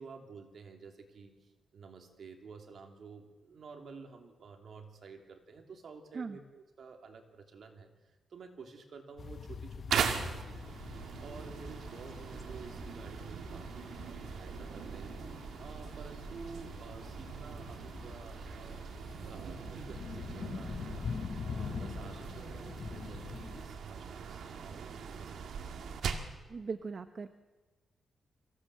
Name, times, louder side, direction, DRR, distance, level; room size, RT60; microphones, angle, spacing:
voice 1, 0.0-14.0 14.3-15.2 15.6-18.9 19.3-21.1 21.5-25.6, right 4 dB, 55° right, 4 dB, 3.1 m, -51 dB
sound 1, 9.2-23.7, left 5 dB, 45° left, 1.2 m, -44 dB
sound 2, 9.9-26.4, right 6 dB, 75° right, 1.9 m, -40 dB
voice 2, 26.5-27.3, right 4 dB, 40° right, 9 dB, 0.9 m, -39 dB
24.5 x 16.5 x 7.6 m, 1.2 s
wide cardioid pair, 140°, 0 cm